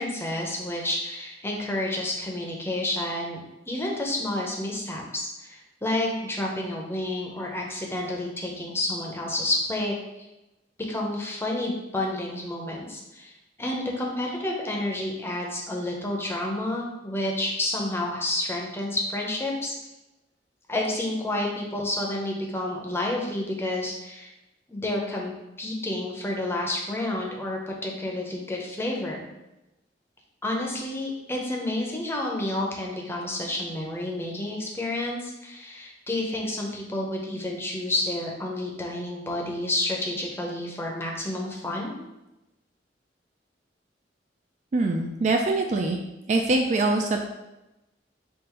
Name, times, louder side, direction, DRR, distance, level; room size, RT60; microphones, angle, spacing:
voice 1, 0.0-10.3 10.9-19.7 20.7-24.3 24.7-25.3 25.6-29.2 30.4-42.0, left 1 dB, 15° left, -1 dB, 0.7 m, -30 dB
voice 2, 44.7-46.0 46.3-47.2, right 2 dB, 40° right, 2 dB, 0.3 m, -23 dB
3.8 x 2.5 x 4.3 m, 0.97 s
head